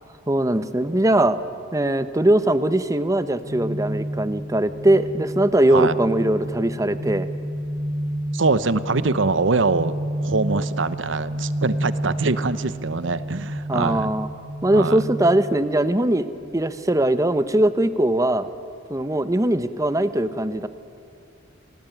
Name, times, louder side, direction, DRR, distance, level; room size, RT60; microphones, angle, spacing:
voice 1, 0.3-1.4 1.7-7.3 13.7-14.3 14.6-16.3 16.5-18.5 18.9-20.7, right 1 dB, 15° right, 12 dB, 0.8 m, -20 dB
sound 1, 3.4-16.4, right 1 dB, 50° right, 2.3 m, -30 dB
voice 2, 8.3-9.9 10.2-14.1 14.7-15.0, right 3 dB, 75° right, 14 dB, 0.9 m, -23 dB
27.5 x 18.0 x 9.2 m, 2.7 s
head